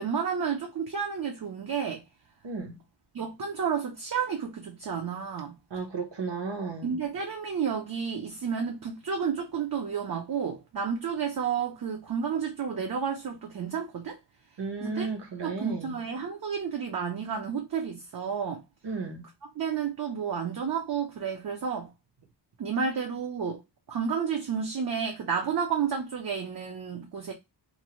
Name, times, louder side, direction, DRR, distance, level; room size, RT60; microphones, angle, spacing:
voice 1, 0.0-2.0 3.1-5.5 6.8-14.2 14.8-15.1 15.4-18.6 19.6-21.9 22.6-23.6 23.9-27.3, right 6 dB, 55° right, 0.6 m, -31 dB
voice 2, 2.4-2.8 5.7-7.0 14.6-16.0 18.8-19.3, right 4 dB, 70° right, 1.0 m, -34 dB
2.6 x 2.1 x 2.9 m
wide cardioid pair, 135°, 44 cm